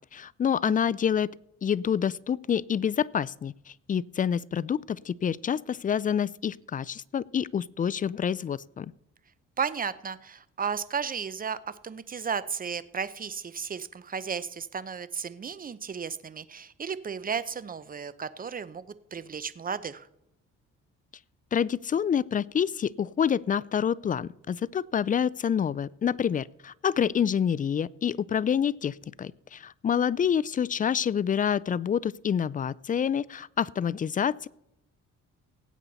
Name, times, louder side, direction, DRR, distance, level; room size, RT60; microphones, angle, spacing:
voice 1, 0.1-1.3 1.6-3.5 3.9-8.9 21.5-34.5, left 8 dB, 30° left, 20 dB, 0.3 m, -27 dB
voice 2, 9.6-20.1, right 6 dB, 30° right, 15 dB, 0.7 m, -34 dB
18.5 x 8.2 x 4.1 m, 0.83 s
cardioid pair, 90°, 30 cm